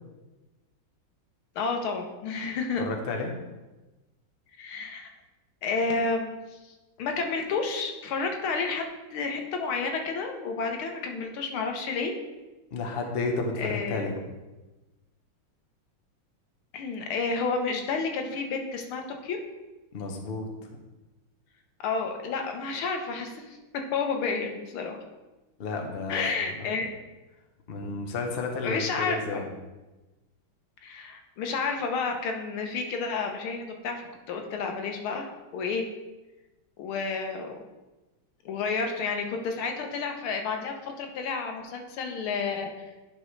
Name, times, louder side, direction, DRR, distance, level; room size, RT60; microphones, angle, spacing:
voice 1, 1.6-2.9 4.6-5.1 5.6-8.9 9.1-12.1 13.6-14.1 16.7-19.4 21.8-23.6 23.9-25.0 26.1-26.9 28.6-29.4 30.8-35.9 36.8-37.5 38.5-42.9, left 4 dB, 80° left, 4 dB, 1.8 m, -30 dB
voice 2, 2.8-3.3 12.7-14.2 19.9-20.5 25.6-26.7 27.7-29.5, left 3 dB, 50° left, 3 dB, 0.7 m, -32 dB
10.5 x 5.2 x 3.2 m, 1.1 s
omnidirectional pair, 2.3 m